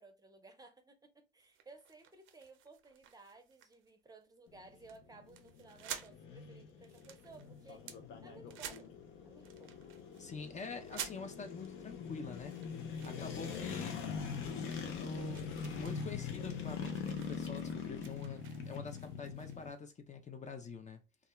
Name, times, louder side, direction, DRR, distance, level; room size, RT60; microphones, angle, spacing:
voice 1, 0.0-7.8 8.2-8.9 9.2-9.7 13.5-13.6, right 3 dB, 20° right, 0.5 m, -58 dB
sound 1, 1.4-3.9 4.2-4.5 4.9-5.0 5.3-6.2 6.6-8.0 8.5-9.1 9.4-10.3 10.9-11.7 12.2-14.4 14.7-19.8, right 9 dB, 85° right, 0.4 m, -51 dB
sound 2, 4.5-19.7, left 6 dB, 85° left, 0.5 m, -43 dB
voice 2, 10.2-12.5 13.0-14.0 14.4-21.0, left 5 dB, 35° left, 0.5 m, -46 dB
2.4 x 2.1 x 2.9 m
cardioid pair, 90°, 20 cm